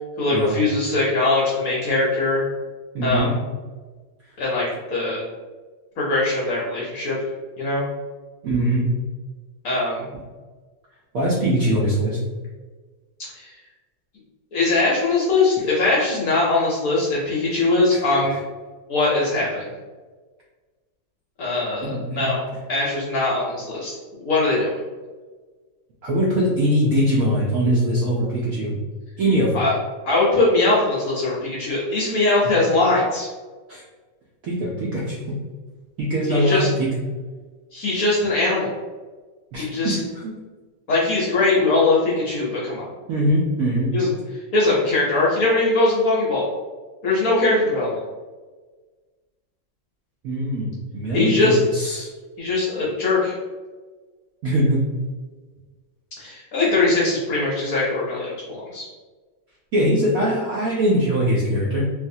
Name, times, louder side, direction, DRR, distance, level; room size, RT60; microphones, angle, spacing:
voice 1, 0.2-2.4 3.0-3.3 4.4-5.2 6.0-7.2 7.6-7.8 9.6-10.0 13.3-13.5 14.5-18.3 18.9-19.7 21.4-22.4 22.7-24.8 29.5-29.8 30.0-33.3 36.3-36.7 37.7-38.7 39.6-40.0 40.9-42.9 43.9-44.1 44.5-46.4 47.0-48.0 51.1-51.6 52.4-53.4 56.2-58.9, left 2 dB, 60° left, -5 dB, 1.0 m, -21 dB
voice 2, 2.9-3.4 8.4-8.9 11.1-12.2 21.8-22.3 26.0-28.7 29.2-29.6 33.7-33.8 34.4-35.3 36.0-36.9 39.5-40.3 43.1-44.0 50.2-52.1 54.4-54.8 59.7-61.8, equal, 75° right, -5 dB, 0.8 m, -22 dB
3.4 x 2.6 x 2.6 m, 1.3 s
omnidirectional pair, 2.1 m